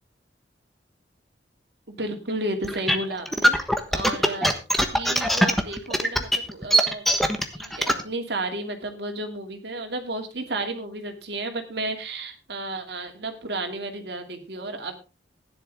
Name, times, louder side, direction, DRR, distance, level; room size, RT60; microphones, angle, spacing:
voice 1, 1.9-3.5 3.9-7.1 7.6-15.0, right 2 dB, 65° right, 5 dB, 2.6 m, -32 dB
sound 1, 2.6-8.0, equal, ahead, 1.3 m, -21 dB
16.0 x 10.5 x 3.6 m, 0.31 s
head